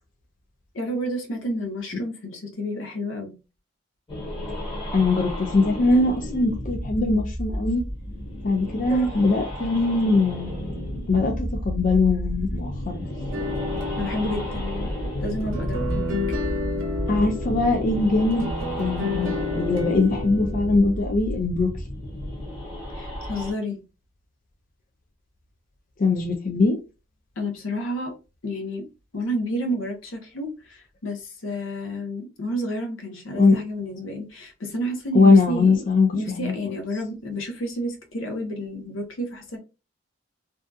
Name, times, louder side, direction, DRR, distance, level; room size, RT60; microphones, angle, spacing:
voice 1, 0.7-3.4 14.0-14.9 15.2-16.4 22.9-23.8 27.4-28.1 28.4-28.9 29.1-35.8 36.1-39.6, equal, 70° left, 0.7 m, -30 dB
sound 1, 4.1-23.5, equal, 25° left, 1.0 m, -32 dB
voice 2, 4.9-7.8 8.4-13.0 17.1-18.5 18.8-21.7 26.0-26.8 33.3-33.6 35.1-36.1 36.4-36.5, left 3 dB, 40° left, 0.4 m, -21 dB
sound 2, 13.3-21.0, left 2 dB, 70° right, 0.6 m, -31 dB
2.6 x 2.3 x 2.2 m
head